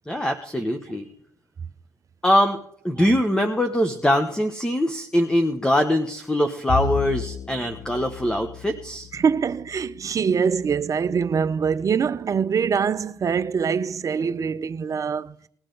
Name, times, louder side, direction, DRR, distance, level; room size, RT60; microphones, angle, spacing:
voice 1, 0.1-1.1 2.2-2.6 2.8-9.1, left 1 dB, 10° left, 1.1 m, -22 dB
Bowed string instrument, 6.7-11.3, left 6 dB, 65° left, 2.0 m, -34 dB
voice 2, 9.1-15.4, right 6 dB, 40° right, 0.6 m, -24 dB
19.0 x 9.8 x 3.9 m
cardioid pair, 80°, 8 cm